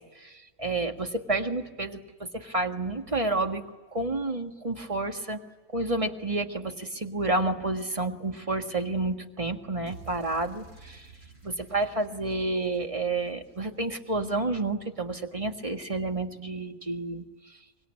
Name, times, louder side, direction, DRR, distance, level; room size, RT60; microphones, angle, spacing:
voice 1, 0.2-3.6 3.9-5.4 5.7-11.1 11.4-17.2, right 2 dB, 25° right, 4 dB, 1.7 m, -30 dB
sound 1, 9.9-14.1, right 3 dB, 50° right, 7.6 m, -51 dB
25.0 x 23.0 x 9.8 m, 1.2 s
omnidirectional pair, 1.4 m